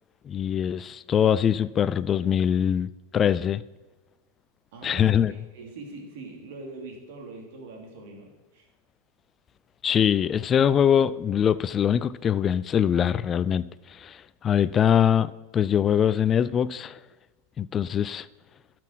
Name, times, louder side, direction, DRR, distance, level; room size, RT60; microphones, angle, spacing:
voice 1, 0.3-3.6 4.8-5.3 9.8-13.7 14.0-14.2 14.4-17.0 17.6-18.3, left 8 dB, 30° left, 0.4 m, -23 dB
voice 2, 4.7-8.7, right 3 dB, 65° right, 2.8 m, -42 dB
12.0 x 6.0 x 4.6 m
hypercardioid pair, 105°, 0 cm